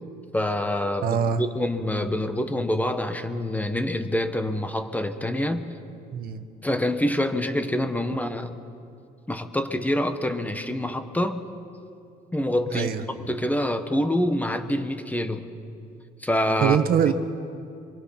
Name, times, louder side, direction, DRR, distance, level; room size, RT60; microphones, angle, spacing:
voice 1, 0.3-5.7 6.6-8.5 9.3-11.4 12.3-12.9 13.2-15.4 16.2-16.8, left 1 dB, 10° left, 8 dB, 1.3 m, -26 dB
voice 2, 1.0-1.4 6.1-6.4 12.7-13.0 16.6-17.1, right 8 dB, 60° right, 9 dB, 1.2 m, -23 dB
24.5 x 23.0 x 5.9 m, 2.5 s
cardioid pair, 110°, 17 cm